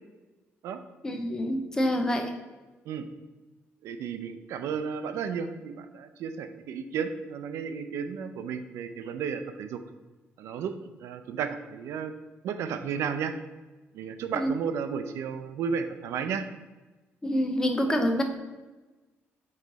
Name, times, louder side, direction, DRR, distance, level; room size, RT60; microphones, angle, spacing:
voice 1, 1.0-2.3 14.3-14.5 17.2-18.2, equal, 15° left, 5 dB, 0.6 m, -26 dB
voice 2, 3.8-9.8 10.4-10.7 11.0-13.3 13.9-16.5, right 6 dB, 85° right, 9 dB, 0.5 m, -33 dB
8.2 x 3.2 x 3.9 m, 1.2 s
cardioid pair, 175°, 5 cm